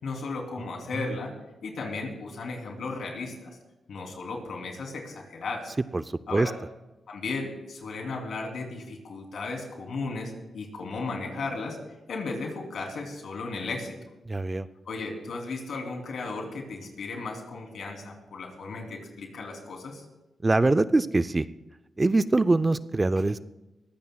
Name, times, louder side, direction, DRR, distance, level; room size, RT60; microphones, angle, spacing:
voice 1, 0.0-1.3 1.6-3.6 3.9-5.7 6.3-6.5 7.1-11.8 12.1-13.9 14.9-20.0, left 3 dB, 75° left, 1 dB, 3.0 m, -35 dB
voice 2, 14.3-14.7 20.4-21.5 22.0-23.4, right 2 dB, 25° right, 14 dB, 0.4 m, -23 dB
21.5 x 15.0 x 2.3 m, 1.0 s
cardioid pair, 80°, 0 cm